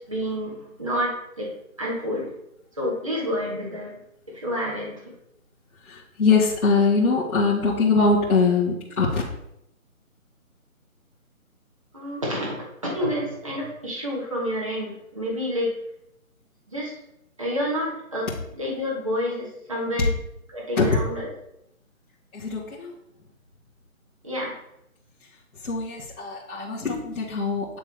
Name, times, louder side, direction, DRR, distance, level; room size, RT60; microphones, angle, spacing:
voice 1, 0.1-2.3 2.8-4.0 4.3-5.1 11.9-15.7 16.7-16.9 17.4-18.3 18.6-20.1 20.5-21.3 24.2-24.6, equal, 25° right, -5 dB, 1.1 m, -29 dB
voice 2, 5.8-9.2 20.8-20.9 22.3-22.9 25.6-27.8, left 4 dB, 85° left, -8 dB, 1.9 m, -22 dB
9.8 x 3.6 x 3.4 m, 0.79 s
hypercardioid pair, 175°, 42 cm